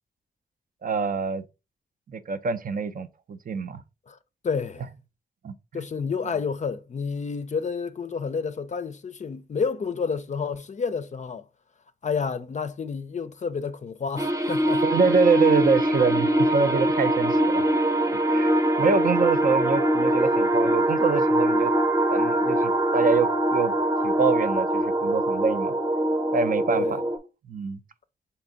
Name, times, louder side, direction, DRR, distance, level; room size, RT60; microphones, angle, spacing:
voice 1, 0.8-1.4 2.1-3.8 5.4-5.8 14.8-17.7 18.1-21.7 22.1-23.7 24.0-25.8 26.3-26.8 27.5-27.8, right 5 dB, 55° right, 0.5 m, -25 dB
voice 2, 4.4-4.9 5.7-11.5 12.0-14.8 18.8-19.0 26.8-27.0, left 5 dB, 45° left, 0.4 m, -30 dB
sound 1, 14.2-27.2, right 1 dB, 20° right, 0.7 m, -23 dB
3.4 x 2.9 x 3.9 m
cardioid pair, 45°, 17 cm